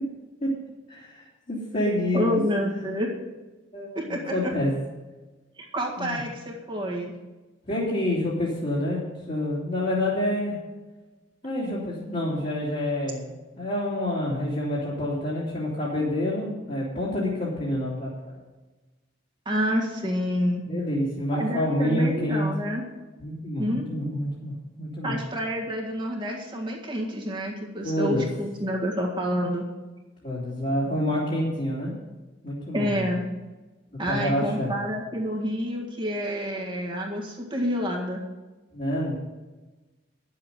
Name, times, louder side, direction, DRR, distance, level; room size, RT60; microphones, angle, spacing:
voice 1, 0.9-2.4 3.7-4.7 6.0-6.2 7.7-10.6 11.4-18.1 20.7-22.5 23.2-25.2 27.8-28.3 30.2-31.9 32.4-33.0 33.9-34.7 38.7-39.2, left 1 dB, 40° left, -7 dB, 2.8 m, -28 dB
voice 2, 2.1-3.1 4.0-4.5 5.6-7.1 19.5-20.7 21.3-22.8 23.6-24.1 25.0-29.7 32.7-33.2 34.0-38.2, equal, 25° right, -1 dB, 1.8 m, -28 dB
11.0 x 7.7 x 6.9 m, 1.2 s
head